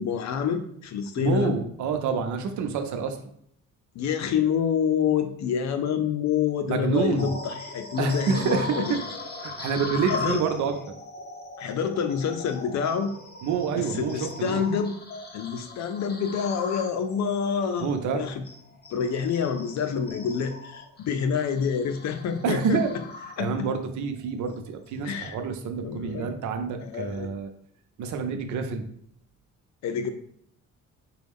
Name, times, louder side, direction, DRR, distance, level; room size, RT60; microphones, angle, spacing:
voice 1, 0.0-1.6 3.9-9.1 10.1-10.4 11.6-13.1 13.7-14.9 15.3-17.9 18.1-18.4 18.9-22.8 23.4-23.7 25.0-25.4 25.8-26.3 26.8-27.3 29.8-30.1, left 7 dB, 65° left, 8 dB, 0.5 m, -27 dB
voice 2, 1.2-3.2 6.7-7.3 8.0-9.0 9.4-10.7 13.4-14.6 17.8-18.2 22.4-22.9 23.4-27.5 28.0-28.9, right 6 dB, 70° right, 6 dB, 0.6 m, -27 dB
sound 1, 7.2-23.8 24.3-24.5 25.0-25.2, left 3 dB, 35° left, 0.9 m, -39 dB
5.1 x 2.3 x 3.5 m, 0.67 s
cardioid pair, 90°, 30 cm